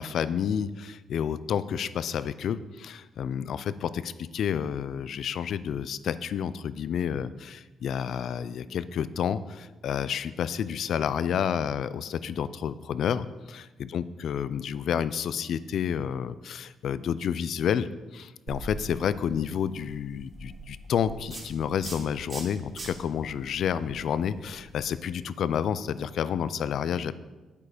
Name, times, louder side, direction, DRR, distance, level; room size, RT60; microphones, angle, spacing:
voice 1, 0.0-27.1, left 8 dB, 65° left, 15 dB, 0.4 m, -30 dB
sound 1, 18.5-25.1, right 1 dB, 40° right, 3.6 m, -43 dB
8.9 x 8.3 x 5.0 m, 1.2 s
cardioid pair, 90°, 0 cm